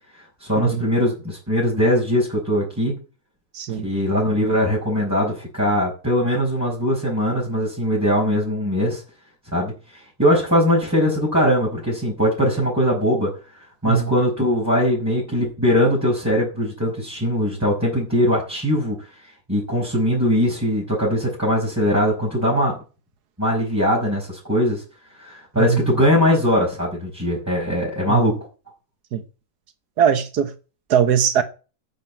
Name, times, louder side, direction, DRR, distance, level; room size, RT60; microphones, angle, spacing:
voice 1, 0.4-2.9 3.8-9.0 9.5-13.3 13.8-19.0 19.5-22.8 23.4-24.8 25.2-28.4, equal, 10° right, 5.5 m, -21 dB
voice 2, 3.5-3.9 13.8-14.1 25.6-25.8 28.1-28.2 29.1-29.2 30.0-30.5 30.9-31.4, right 8 dB, 85° right, 1.6 m, -20 dB
9.1 x 7.5 x 9.0 m
omnidirectional pair, 1.6 m